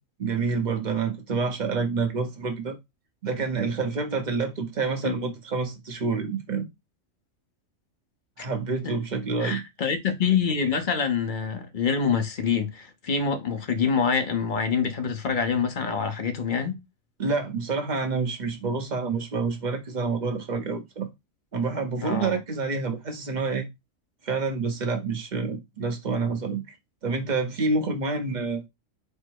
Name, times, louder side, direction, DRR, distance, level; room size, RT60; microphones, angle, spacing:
voice 1, 0.2-2.8 3.2-6.7 8.4-9.6 17.2-21.1 21.5-23.7 24.2-26.6 27.0-28.6, right 4 dB, 40° right, 0.8 m, -28 dB
voice 2, 9.4-16.8 22.0-22.4, left 6 dB, 45° left, 0.8 m, -26 dB
4.4 x 2.0 x 4.5 m
omnidirectional pair, 1.4 m